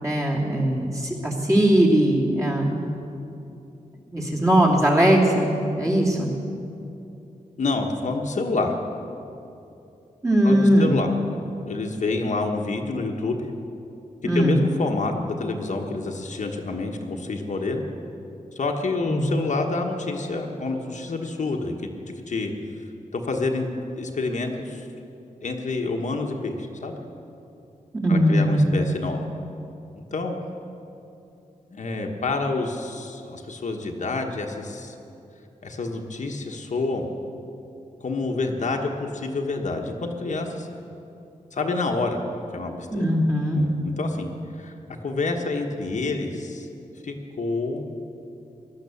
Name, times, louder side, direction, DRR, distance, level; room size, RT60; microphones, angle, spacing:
voice 1, 0.0-2.8 4.1-6.3 10.2-11.0 14.2-14.6 19.1-19.2 28.0-28.6 42.9-43.6, right 1 dB, 20° right, -3 dB, 2.8 m, -20 dB
voice 2, 7.6-8.8 10.4-11.1 11.7-13.4 14.3-17.8 18.5-21.9 22.2-22.5 23.1-23.7 23.9-24.8 25.4-26.9 28.1-29.2 29.9-30.3 31.7-34.9 35.6-37.1 38.0-40.7 41.5-42.2 42.5-43.0 43.5-44.3 44.6-44.7 45.0-46.7 47.0-47.9, left 3 dB, 60° left, 2 dB, 1.3 m, -28 dB
17.5 x 11.5 x 7.1 m, 2.8 s
wide cardioid pair, 115°, 14 cm